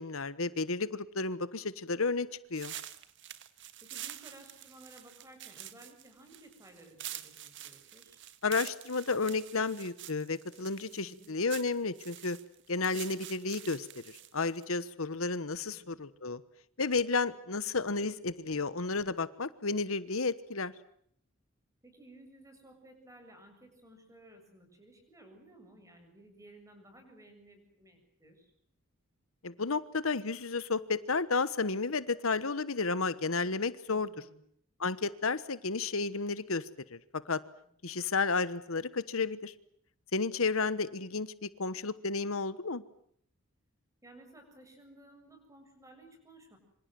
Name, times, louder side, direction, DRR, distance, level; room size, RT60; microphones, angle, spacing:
voice 1, 0.0-2.7 8.4-12.4 12.7-14.0 14.3-16.4 16.8-20.7 29.4-34.1 34.8-36.6 36.9-37.0 37.3-37.4 37.8-39.5 40.1-42.8, left 4 dB, 70° left, 15 dB, 1.3 m, -32 dB
sound 1, 2.5-14.6, right 12 dB, 55° right, 1.8 m, -47 dB
voice 2, 3.8-8.2 10.9-11.4 15.7-16.1 21.8-28.5 33.9-34.4 37.9-38.1 44.0-46.6, right 1 dB, 15° right, 6 dB, 7.1 m, -56 dB
27.0 x 26.0 x 7.8 m, 0.66 s
head